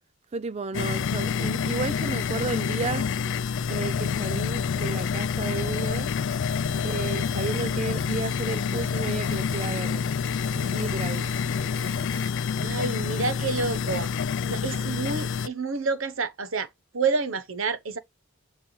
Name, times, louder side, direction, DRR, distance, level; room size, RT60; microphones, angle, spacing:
voice 1, 0.3-3.1 3.7-6.1 6.8-10.0 10.6-11.3, right 4 dB, 30° right, 0.4 m, -33 dB
sound 1, 0.7-15.5, left 6 dB, 60° left, 0.4 m, -27 dB
Drum kit, 6.3-12.3, right 2 dB, 45° right, 1.3 m, -47 dB
voice 2, 12.6-14.1 14.5-18.0, right 4 dB, 70° right, 0.9 m, -29 dB
8.6 x 4.2 x 3.2 m
head